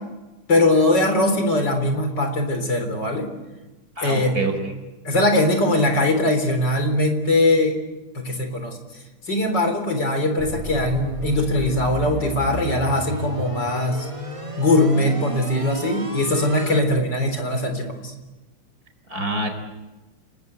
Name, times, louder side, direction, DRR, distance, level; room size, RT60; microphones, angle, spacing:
voice 1, 0.5-3.3 4.0-4.3 5.0-7.8 8.1-8.8 9.3-14.1 14.6-18.1, left 1 dB, 50° left, 6 dB, 4.5 m, -21 dB
voice 2, 4.0-4.7 19.1-19.5, right 2 dB, 40° right, 5 dB, 5.1 m, -26 dB
sound 1, 10.4-16.8, right 1 dB, 15° right, 1.6 m, -32 dB
30.0 x 20.5 x 8.2 m, 1.1 s
omnidirectional pair, 2.4 m